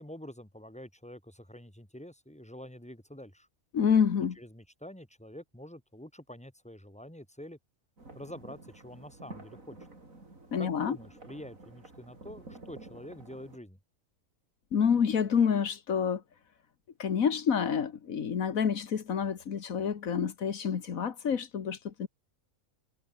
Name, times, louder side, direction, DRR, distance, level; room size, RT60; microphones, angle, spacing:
voice 1, 0.0-3.5 4.2-7.6 8.1-9.8 10.6-13.8, left 1 dB, 5° left, 4.1 m, -47 dB
voice 2, 3.7-4.4 10.5-11.0 14.7-16.2 17.0-22.1, left 7 dB, 85° left, 1.8 m, -28 dB
sound 1, 8.0-13.6, right 2 dB, 80° right, 5.3 m, -50 dB
omnidirectional pair, 1.4 m